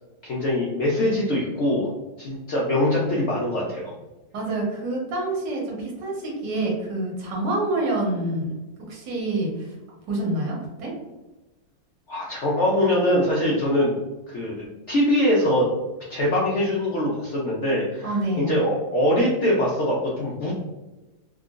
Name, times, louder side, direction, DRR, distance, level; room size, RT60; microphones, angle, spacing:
voice 1, 0.2-1.9 2.2-3.9 12.1-14.0 14.3-15.7 16.1-20.5, left 1 dB, 75° left, -4 dB, 0.6 m, -23 dB
voice 2, 4.3-8.5 8.9-9.7 10.1-10.9 18.0-18.5, right 2 dB, 80° right, -2 dB, 1.5 m, -27 dB
3.6 x 2.2 x 2.4 m, 1.1 s
omnidirectional pair, 1.9 m